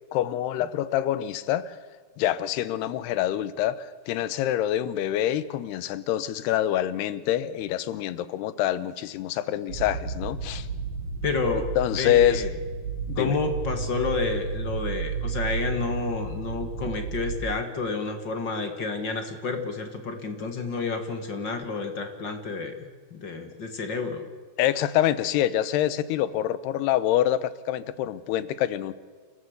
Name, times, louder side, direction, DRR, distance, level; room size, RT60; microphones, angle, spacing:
voice 1, 0.1-1.8 2.2-10.7 11.8-12.4 13.1-13.4 24.6-28.9, left 12 dB, 85° left, 16 dB, 3.0 m, -26 dB
sound 1, 9.7-17.4, right 5 dB, 55° right, 4.9 m, -32 dB
voice 2, 11.2-12.5 13.1-24.3, left 4 dB, 40° left, 6 dB, 1.7 m, -30 dB
30.0 x 14.0 x 8.1 m, 1.6 s
omnidirectional pair, 4.6 m